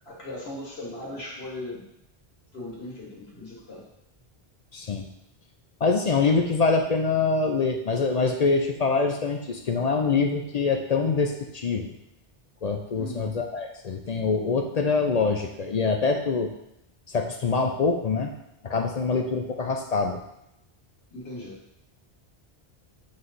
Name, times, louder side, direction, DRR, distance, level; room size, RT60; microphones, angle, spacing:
voice 1, 0.1-1.8 2.5-3.9 12.9-13.4 21.1-21.6, left 1 dB, 80° left, -2 dB, 1.8 m, -38 dB
voice 2, 4.7-5.0 5.8-11.9 12.6-16.5 17.1-18.3 18.6-20.2, left 4 dB, 50° left, 4 dB, 0.5 m, -24 dB
8.0 x 3.2 x 4.0 m, 0.84 s
omnidirectional pair, 1.0 m